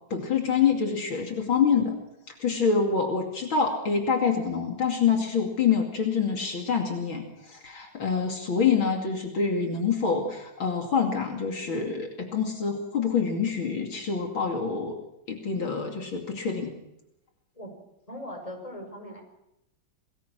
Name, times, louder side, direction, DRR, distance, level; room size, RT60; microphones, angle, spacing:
voice 1, 0.1-1.9 2.4-14.9 15.3-16.8, left 6 dB, 70° left, 3 dB, 3.4 m, -26 dB
voice 2, 18.1-19.2, equal, 15° left, 4 dB, 5.6 m, -39 dB
27.5 x 20.5 x 6.3 m, 0.85 s
omnidirectional pair, 2.3 m